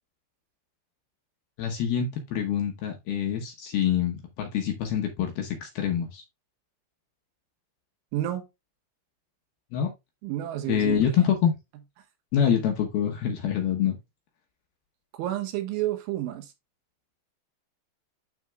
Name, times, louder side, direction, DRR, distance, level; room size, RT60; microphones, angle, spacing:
voice 1, 1.6-6.2 9.7-9.9 10.7-11.5 12.3-14.0, left 8 dB, 75° left, 2.4 m, -26 dB
voice 2, 8.1-8.4 10.2-11.1 15.1-16.5, right 13 dB, 80° right, 3.6 m, -30 dB
12.0 x 4.4 x 2.3 m
omnidirectional pair, 5.6 m